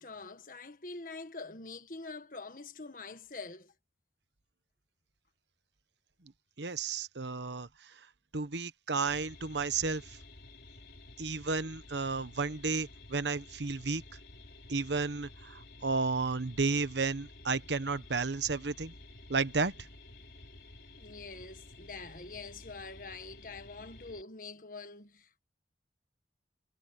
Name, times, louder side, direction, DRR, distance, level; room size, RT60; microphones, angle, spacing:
voice 1, 0.0-3.7 21.0-25.4, left 3 dB, 50° left, 1.6 m, -45 dB
voice 2, 6.6-7.7 8.3-10.0 11.2-14.0 14.7-18.9 19.3-19.7, right 4 dB, 85° right, 1.1 m, -32 dB
sound 1, 9.1-24.2, left 2 dB, 65° left, 4.0 m, -52 dB
head